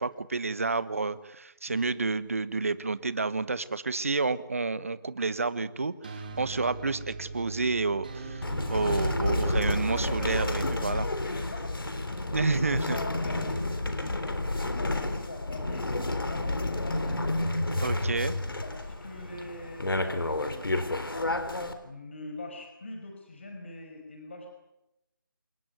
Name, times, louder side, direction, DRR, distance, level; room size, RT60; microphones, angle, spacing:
voice 1, 0.0-8.2 8.7-11.1 12.3-13.0 17.8-18.3, right 3 dB, 40° right, 15 dB, 1.3 m, -30 dB
sound 1, 5.6-10.7, right 5 dB, 25° right, 2.0 m, -38 dB
sound 2, 8.4-21.7, left 2 dB, 90° left, 4.0 m, -30 dB
voice 2, 9.9-10.6 10.9-11.7 12.4-12.5 12.9-17.2 18.6-21.4 21.8-24.5, left 2 dB, 35° left, 3 dB, 5.3 m, -43 dB
28.0 x 18.5 x 9.6 m, 0.89 s
figure-of-eight pair, 175°, 11 cm